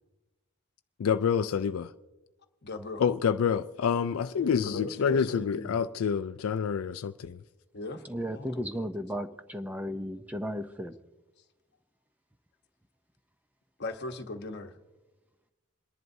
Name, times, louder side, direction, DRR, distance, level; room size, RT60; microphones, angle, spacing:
voice 1, 1.0-1.9 3.0-7.4, left 7 dB, 70° left, 0.4 m, -27 dB
voice 2, 2.6-3.0 4.3-5.8 7.7-8.7 13.8-14.7, left 2 dB, 50° left, 1.0 m, -38 dB
voice 3, 8.0-11.0, equal, 5° right, 0.5 m, -35 dB
28.0 x 11.0 x 2.7 m
head